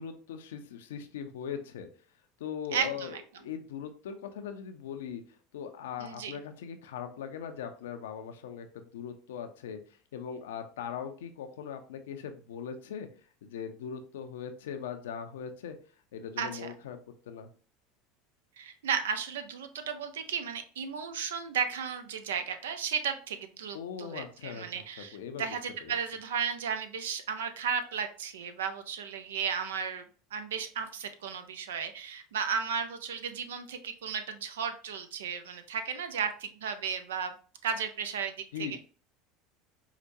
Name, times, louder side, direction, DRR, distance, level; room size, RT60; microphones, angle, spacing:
voice 1, 0.0-1.9 2.4-5.2 5.5-13.1 13.4-15.8 16.1-17.0 17.3-17.5 23.7-25.6 25.8-25.9 38.5-38.8, left 7 dB, 80° left, 8 dB, 0.5 m, -40 dB
voice 2, 2.7-3.2 6.0-6.4 16.4-16.7 18.6-30.0 30.3-37.3 37.6-38.8, right 6 dB, 85° right, 9 dB, 0.5 m, -34 dB
4.7 x 2.1 x 2.6 m, 0.40 s
hypercardioid pair, 90°, 0 cm